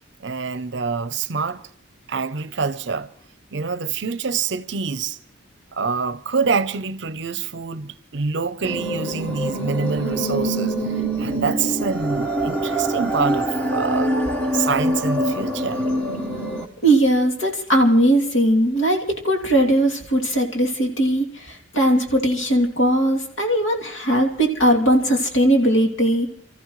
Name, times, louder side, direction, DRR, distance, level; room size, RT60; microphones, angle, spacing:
voice 1, 0.2-1.6 2.1-3.1 3.5-5.2 5.7-10.8 11.2-14.1 14.5-15.9, right 5 dB, 60° right, 0.6 m, -26 dB
sound 1, 8.6-16.6, right 1 dB, 10° left, 1.2 m, -24 dB
voice 2, 16.8-26.3, right 1 dB, 85° left, 2.8 m, -19 dB
28.5 x 14.0 x 3.2 m
head